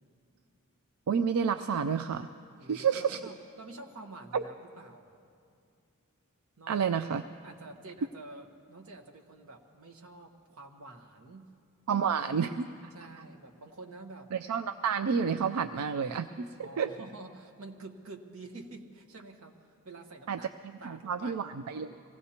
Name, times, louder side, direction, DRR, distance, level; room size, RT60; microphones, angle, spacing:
voice 1, 1.1-2.3 2.7-3.2 4.3-4.4 6.7-7.2 11.9-12.7 14.3-16.9 20.3-20.4 20.8-21.9, right 6 dB, 90° right, 10 dB, 0.4 m, -30 dB
voice 2, 2.6-5.1 6.6-6.8 7.4-11.5 12.9-14.3 16.6-20.5 20.8-22.0, right 2 dB, 70° right, 3 dB, 1.2 m, -48 dB
24.5 x 16.5 x 2.9 m, 2.4 s
head